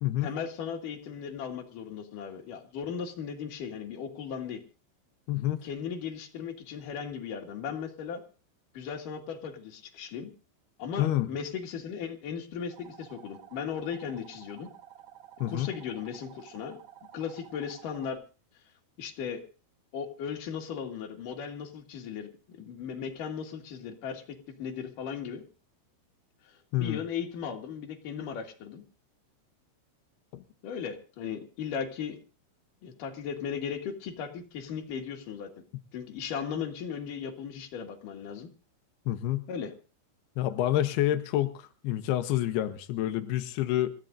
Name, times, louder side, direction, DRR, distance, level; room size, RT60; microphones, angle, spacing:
voice 1, 0.2-4.6 5.6-8.2 8.7-10.3 10.8-14.7 15.5-16.8 17.1-18.2 19.0-19.4 19.9-24.2 24.6-25.4 26.8-28.8 30.6-32.2 32.8-35.5 35.9-38.5 39.5-39.7, left 7 dB, 55° left, 2 dB, 2.9 m, -37 dB
voice 2, 5.3-5.6 11.0-11.3 15.4-15.7 26.7-27.0 30.3-30.4 39.1-39.5 40.4-43.9, left 13 dB, 90° left, 8 dB, 2.2 m, -28 dB
sound 1, 12.7-18.1, right 11 dB, 75° right, 3.6 m, -52 dB
27.5 x 14.5 x 2.6 m, 0.35 s
omnidirectional pair, 5.8 m